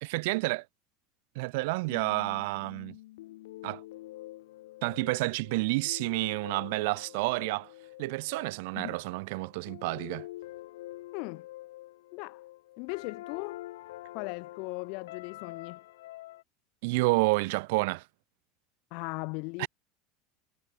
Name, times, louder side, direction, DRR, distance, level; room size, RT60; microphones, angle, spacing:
voice 1, 0.0-0.6 1.4-3.0 3.6-3.8 4.8-7.7 8.0-10.3 16.8-18.0 19.6-19.7, right 25 dB, 70° right, 0.5 m, -29 dB
sound 1, 1.9-16.4, left 16 dB, 85° left, 1.7 m, -46 dB
voice 2, 11.1-11.4 12.1-12.4 12.8-13.6 14.1-15.8 18.9-19.7, left 32 dB, 65° left, 0.5 m, -38 dB
supercardioid pair, 115°, 0 cm